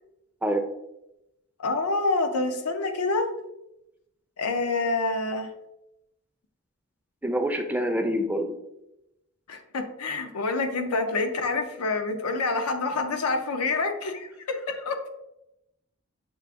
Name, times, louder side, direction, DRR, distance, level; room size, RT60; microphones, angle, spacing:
voice 1, 1.6-3.3 4.4-5.5 9.5-15.1, left 3 dB, 90° left, 6 dB, 0.6 m, -27 dB
voice 2, 7.2-8.5, equal, 5° right, 4 dB, 0.3 m, -26 dB
6.1 x 2.5 x 3.5 m, 0.88 s
head